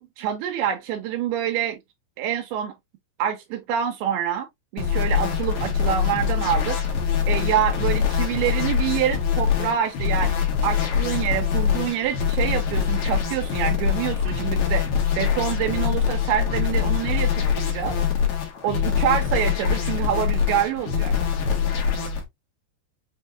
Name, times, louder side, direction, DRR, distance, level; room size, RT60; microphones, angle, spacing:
voice 1, 0.0-1.8 2.2-2.7 3.2-4.5 4.7-6.8 7.3-14.8 15.2-18.0 18.6-21.1, right 10 dB, 80° right, 2.5 m, -26 dB
sound 1, 4.8-22.2, left 7 dB, 70° left, 1.8 m, -24 dB
6.2 x 2.8 x 2.3 m
omnidirectional pair, 4.7 m